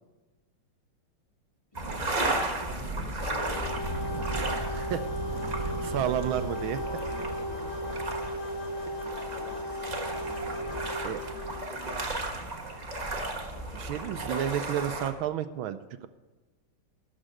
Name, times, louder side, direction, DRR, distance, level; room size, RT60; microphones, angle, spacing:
voice 1, 1.7-3.8 4.6-4.7 5.5-8.4 8.9-12.4 13.5-14.2, equal, 20° left, 0 dB, 1.0 m, -48 dB
sound 1, 1.7-15.1, right 2 dB, 25° right, 1.1 m, -34 dB
sound 2, 3.2-11.6, equal, 70° left, 1.9 m, -36 dB
voice 2, 4.7-5.1 5.6-6.8 11.0-11.2 13.7-16.1, right 10 dB, 80° right, 11 dB, 1.4 m, -31 dB
13.0 x 6.2 x 7.6 m, 1.1 s
omnidirectional pair, 2.3 m